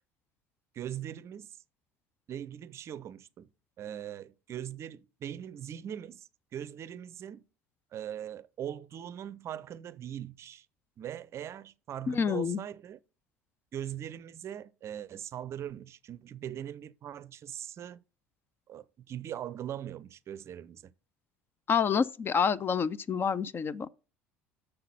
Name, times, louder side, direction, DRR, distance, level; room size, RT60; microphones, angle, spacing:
voice 1, 0.7-1.6 2.3-3.5 3.8-7.4 7.9-10.7 11.0-13.0 13.7-18.0 18.7-20.9, right 10 dB, 40° right, 0.5 m, -41 dB
voice 2, 12.1-12.6 21.7-23.9, left 6 dB, 35° left, 0.5 m, -28 dB
6.7 x 5.8 x 5.6 m
hypercardioid pair, 65°, 7 cm